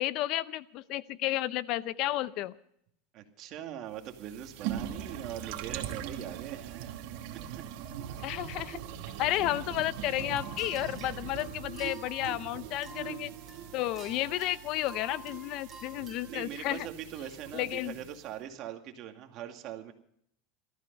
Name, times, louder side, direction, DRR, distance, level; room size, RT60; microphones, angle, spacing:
voice 1, 0.0-2.5 8.2-8.8 9.2-13.3 13.7-16.9 17.5-17.9, left 15 dB, 50° left, 17 dB, 0.6 m, -32 dB
voice 2, 3.1-7.0 7.3-7.6 16.3-19.9, right 10 dB, 45° right, 5 dB, 2.3 m, -42 dB
sound 1, 4.0-18.3, right 10 dB, 60° right, 2.3 m, -41 dB
sound 2, 10.0-16.3, right 1 dB, 15° right, 6.5 m, -50 dB
19.0 x 14.0 x 5.4 m, 0.69 s
supercardioid pair, 140°, 0 cm